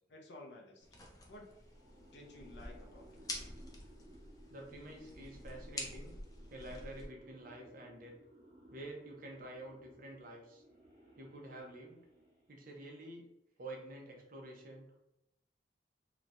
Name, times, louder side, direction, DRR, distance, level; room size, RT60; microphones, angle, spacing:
voice 1, 0.1-0.9 1.3-1.5 2.1-3.2, left 1 dB, 80° left, 1 dB, 0.6 m, -53 dB
sound 1, 0.8-7.1, left 2 dB, 20° left, 0.4 m, -48 dB
sound 2, 1.5-12.6, right 1 dB, 20° right, 1.2 m, -61 dB
voice 2, 4.5-6.2 6.5-8.1 8.7-10.6 11.2-12.0 12.5-13.3 13.6-14.9, right 1 dB, 50° right, 0 dB, 0.6 m, -49 dB
3.0 x 2.2 x 2.6 m, 0.84 s
head